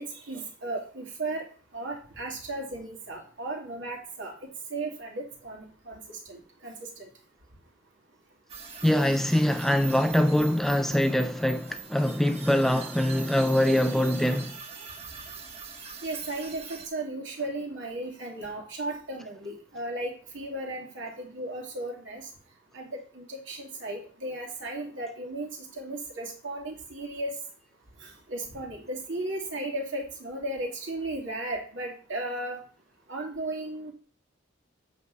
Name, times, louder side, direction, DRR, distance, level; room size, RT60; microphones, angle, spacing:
voice 1, 0.0-1.4 1.7-4.3 4.7-6.7 7.0-7.1 16.0-22.2 22.7-25.5 25.8-27.3 28.0-32.6 33.1-33.9, right 2 dB, 65° right, 2.6 m, -35 dB
sound 1, 8.5-16.9, right 6 dB, 30° right, 1.5 m, -43 dB
voice 2, 8.8-14.6, left 1 dB, ahead, 0.3 m, -23 dB
8.4 x 6.6 x 4.0 m
head